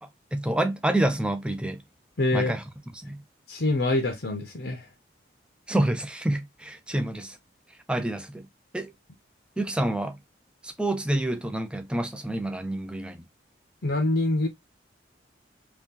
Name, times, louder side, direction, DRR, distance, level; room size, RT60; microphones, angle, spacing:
voice 1, 0.0-1.8 2.3-2.6 2.9-3.2 5.7-7.4 7.9-8.5 8.7-8.9 9.6-10.2 10.6-13.2, right 1 dB, 5° right, 0.5 m, -28 dB
voice 2, 2.2-2.5 3.5-4.9 13.8-14.5, left 2 dB, 60° left, 0.7 m, -25 dB
3.0 x 2.9 x 3.6 m
head